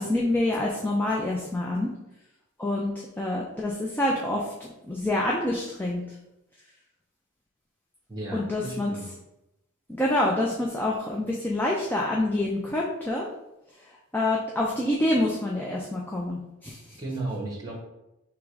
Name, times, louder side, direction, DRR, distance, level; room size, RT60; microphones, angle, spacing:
voice 1, 0.0-1.9 2.6-4.5 4.9-6.0 8.3-8.9 10.0-13.3 14.1-17.0, left 1 dB, 10° left, -3 dB, 0.4 m, -27 dB
voice 2, 8.1-9.1 17.0-17.8, right 2 dB, 15° right, -2 dB, 1.2 m, -34 dB
3.6 x 3.0 x 4.7 m, 0.90 s
head